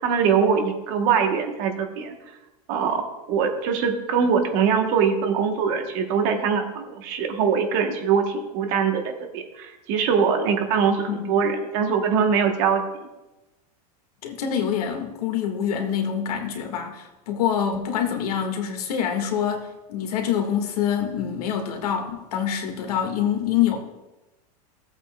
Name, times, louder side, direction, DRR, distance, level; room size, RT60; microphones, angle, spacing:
voice 1, 0.0-2.1 2.7-3.0 3.3-12.8, right 6 dB, 35° right, 5 dB, 1.0 m, -22 dB
voice 2, 14.2-23.8, left 8 dB, 70° left, 4 dB, 1.6 m, -26 dB
15.5 x 8.1 x 2.2 m, 1.0 s
supercardioid pair, 175°, 20 cm